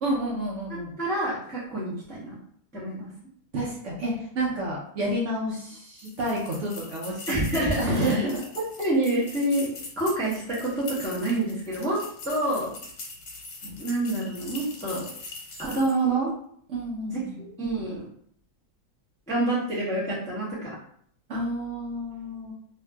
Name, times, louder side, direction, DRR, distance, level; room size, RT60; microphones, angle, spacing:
voice 1, 0.0-1.0 3.5-7.2 7.5-8.4 13.6-13.8 16.7-17.4 21.3-22.5, right 1 dB, 65° right, -4 dB, 0.8 m, -29 dB
voice 2, 0.7-2.4 2.7-3.1 7.3-9.7 10.0-12.7 13.8-15.1 15.6-16.3 17.1-18.1 19.3-20.8, right 2 dB, 5° left, -7 dB, 0.4 m, -27 dB
sound 1, 6.0-16.1, left 3 dB, 85° left, 1.3 m, -42 dB
2.7 x 2.5 x 2.2 m, 0.63 s
omnidirectional pair, 1.7 m